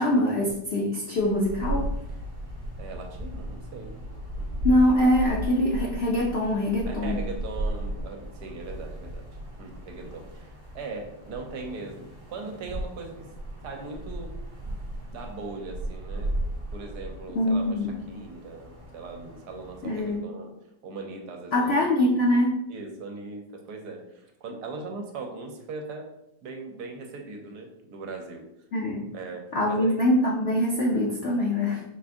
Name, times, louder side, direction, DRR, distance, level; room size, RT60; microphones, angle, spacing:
voice 1, 0.0-1.9 4.6-7.2 17.3-17.9 19.8-20.3 21.5-22.6 28.7-29.1 29.5-31.8, left 1 dB, 90° left, -2 dB, 0.5 m, -23 dB
sound 1, 1.2-20.2, right 1 dB, 30° right, 1.7 m, -36 dB
voice 2, 2.8-4.0 4.4-4.6 6.9-9.2 9.6-13.3 13.6-14.4 14.6-14.7 15.0-16.4 16.7-20.5 20.8-21.7 22.7-26.1 26.4-28.5 29.1-30.0, right 3 dB, 75° right, 3 dB, 1.2 m, -39 dB
4.9 x 2.5 x 3.5 m, 0.83 s
omnidirectional pair, 1.8 m